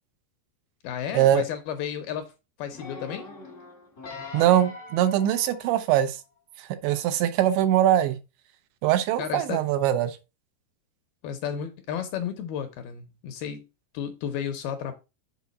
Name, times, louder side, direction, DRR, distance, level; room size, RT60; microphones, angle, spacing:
voice 1, 0.8-2.3 2.6-3.3 9.2-9.6 11.2-13.6 13.9-14.9, left 8 dB, 80° left, 2.3 m, -33 dB
sound 1, 2.7-6.2 6.8-6.9, left 3 dB, 60° left, 0.8 m, -42 dB
voice 2, 4.3-6.2 6.6-8.2 8.8-10.2, right 11 dB, 90° right, 3.1 m, -22 dB
7.2 x 4.7 x 4.0 m
omnidirectional pair, 5.0 m